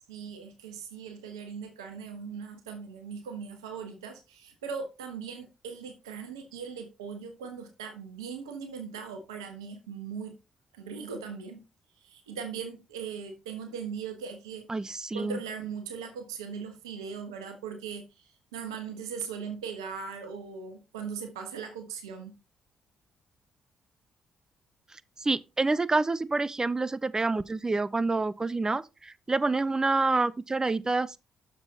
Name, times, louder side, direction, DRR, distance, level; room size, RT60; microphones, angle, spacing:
voice 1, 0.1-10.4 10.7-11.6 12.0-14.6 15.1-22.4, right 6 dB, 90° right, 1.2 m, -39 dB
voice 2, 14.7-15.4 25.2-31.2, right 3 dB, 25° right, 0.6 m, -27 dB
6.9 x 6.1 x 4.0 m
hypercardioid pair, 45°, 3 cm